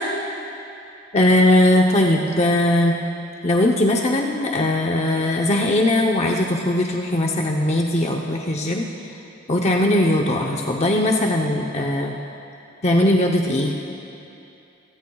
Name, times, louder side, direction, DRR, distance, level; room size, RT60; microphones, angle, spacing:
voice 1, 1.1-3.0 3.4-8.9 9.5-12.2 12.8-13.7, left 1 dB, 30° left, 0 dB, 0.7 m, -19 dB
26.5 x 19.0 x 2.3 m, 2.8 s
head